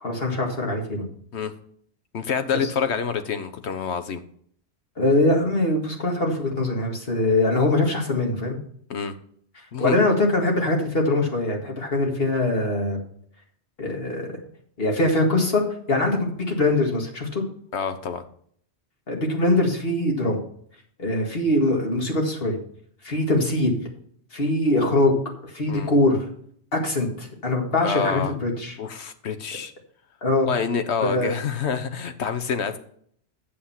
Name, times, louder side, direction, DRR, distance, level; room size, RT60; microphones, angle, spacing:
voice 1, 0.0-1.1 2.5-2.6 5.0-8.6 9.8-13.0 13.8-14.4 14.8-15.6 15.9-17.4 19.1-20.4 21.0-22.6 23.0-23.8 24.3-25.2 25.4-26.2 26.7-28.8 30.2-30.5 31.0-31.3, left 2 dB, 55° left, 0 dB, 2.2 m, -22 dB
voice 2, 2.1-4.2 8.9-9.1 9.7-10.0 17.7-18.2 25.7-25.9 27.8-28.3 28.8-29.7 30.5-32.8, left 6 dB, 75° left, 9 dB, 1.2 m, -27 dB
8.7 x 6.7 x 5.7 m, 0.62 s
omnidirectional pair, 1.2 m